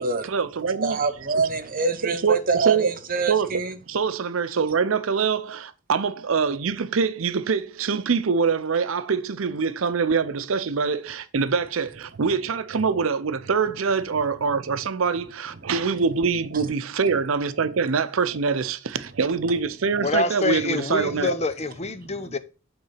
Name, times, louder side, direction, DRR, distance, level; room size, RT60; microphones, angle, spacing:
voice 1, 0.0-1.0 1.3-1.4 2.0-2.9 3.3-3.5 3.9-21.4, right 5 dB, 85° right, 0.6 m, -24 dB
voice 2, 0.8-3.8 22.0-22.3, right 4 dB, 45° right, 0.9 m, -25 dB
voice 3, 20.0-22.4, left 3 dB, 30° left, 0.6 m, -26 dB
8.6 x 3.9 x 5.7 m
head